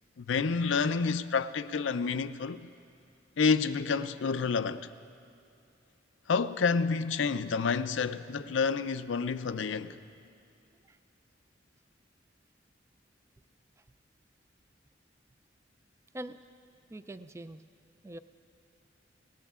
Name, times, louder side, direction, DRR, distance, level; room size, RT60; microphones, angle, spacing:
voice 1, 0.2-2.7 3.4-4.9 6.3-10.0, left 5 dB, 80° left, 0.5 m, -29 dB
voice 2, 16.9-17.6 18.0-18.2, right 1 dB, 15° right, 0.3 m, -42 dB
26.0 x 18.5 x 2.4 m
head